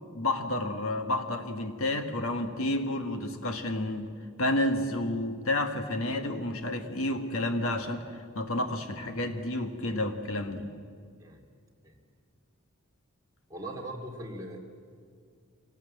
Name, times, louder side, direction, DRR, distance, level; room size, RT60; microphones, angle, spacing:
voice 1, 0.1-4.1 4.4-10.7, left 1 dB, 65° left, 6 dB, 1.7 m, -30 dB
voice 2, 13.5-14.6, right 1 dB, 15° right, -2 dB, 2.8 m, -40 dB
25.0 x 19.0 x 7.7 m, 2.2 s
head